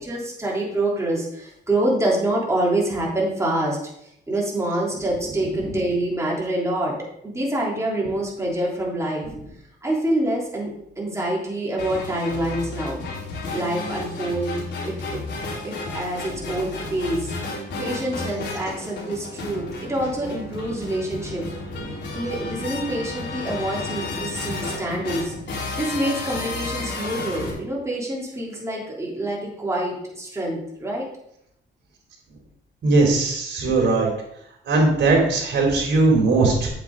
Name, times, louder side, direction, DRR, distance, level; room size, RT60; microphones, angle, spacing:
voice 1, 0.0-9.3 9.8-13.0 13.5-14.5 14.8-15.2 15.6-17.3 17.8-21.5 22.1-25.3 25.7-31.1, right 1 dB, 15° right, -4 dB, 3.4 m, -26 dB
sound 1, 11.8-27.5, left 3 dB, 65° left, 4.0 m, -32 dB
voice 2, 32.8-34.1 34.7-36.7, right 3 dB, 60° right, -1 dB, 3.8 m, -19 dB
8.3 x 8.0 x 3.9 m, 0.75 s
cardioid pair, 90°, 20 cm